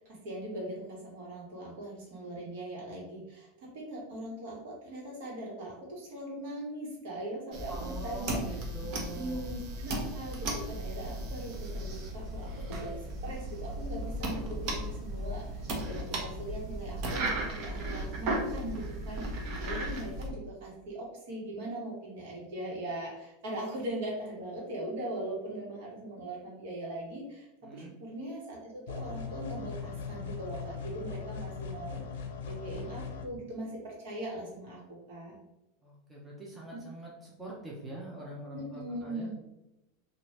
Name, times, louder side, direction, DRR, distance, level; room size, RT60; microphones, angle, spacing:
voice 1, 0.0-8.6 9.1-13.0 13.2-27.5 27.7-34.8 35.1-35.4 36.7-36.8 38.5-39.3, right 1 dB, 65° right, -3 dB, 1.3 m, -40 dB
sound 1, 7.5-20.3, right 1 dB, 45° right, 0.7 m, -36 dB
voice 2, 7.7-9.5 27.6-27.9 35.8-39.3, right 1 dB, 5° right, -5 dB, 0.6 m, -44 dB
sound 2, 28.9-33.3, left 6 dB, 90° left, 0.5 m, -39 dB
2.8 x 2.5 x 3.1 m, 0.92 s
supercardioid pair, 155°, 0 cm